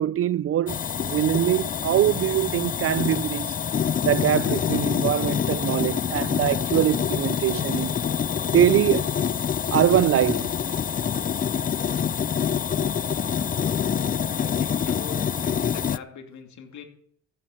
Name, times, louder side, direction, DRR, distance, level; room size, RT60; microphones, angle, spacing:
voice 1, 0.0-3.5 4.0-8.0 8.5-9.1 9.7-10.5, right 11 dB, 50° right, 0.4 m, -23 dB
sound 1, 0.7-16.0, left 8 dB, 30° left, 0.4 m, -26 dB
voice 2, 14.2-16.8, left 7 dB, 70° left, 2.7 m, -42 dB
14.0 x 7.9 x 7.6 m
cardioid pair, 90°, 30 cm